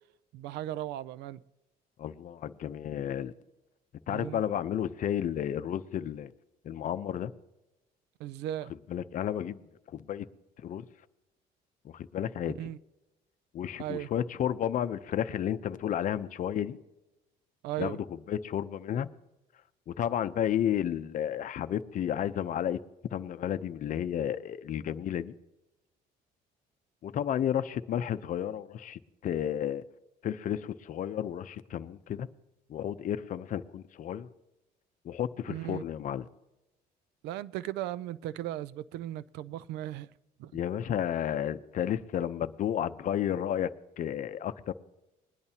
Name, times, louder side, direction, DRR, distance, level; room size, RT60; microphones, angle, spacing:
voice 1, 0.3-1.4 4.1-4.4 8.2-8.7 12.6-12.8 13.8-14.1 17.6-18.0 35.5-35.8 37.2-40.1 40.4-40.5, right 13 dB, 90° right, 0.5 m, -36 dB
voice 2, 2.0-3.3 4.1-6.3 6.6-7.3 8.9-10.3 10.6-10.9 11.8-12.6 13.5-16.8 17.8-19.1 19.9-22.8 23.1-25.3 27.0-29.8 30.2-32.3 32.7-34.3 35.0-36.2 40.5-43.7 44.0-44.7, left 10 dB, 50° left, 0.6 m, -32 dB
21.0 x 10.5 x 2.8 m
cardioid pair, 110°, 17 cm